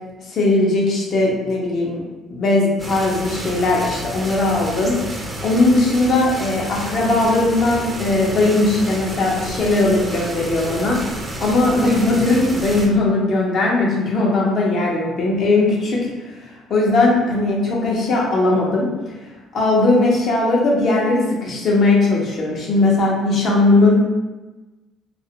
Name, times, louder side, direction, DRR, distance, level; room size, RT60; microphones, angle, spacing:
voice 1, 0.2-2.0 2.3-16.4 16.7-19.1 19.5-24.0, left 2 dB, 60° left, -3 dB, 0.7 m, -18 dB
sound 1, 2.8-12.9, right 1 dB, 25° right, 0.5 m, -30 dB
2.4 x 2.0 x 2.8 m, 1.1 s
supercardioid pair, 65°, 0 cm